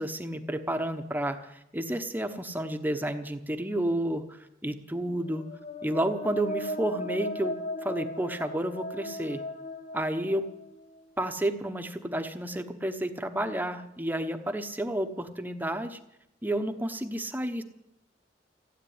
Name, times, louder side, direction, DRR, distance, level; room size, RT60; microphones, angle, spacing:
voice 1, 0.0-5.4 5.8-9.4 9.9-10.5 11.2-16.0 16.4-17.6, right 1 dB, 10° right, 7 dB, 1.0 m, -31 dB
sound 1, 5.2-11.0, equal, 40° left, 1.0 m, -37 dB
16.0 x 9.0 x 9.5 m, 0.81 s
head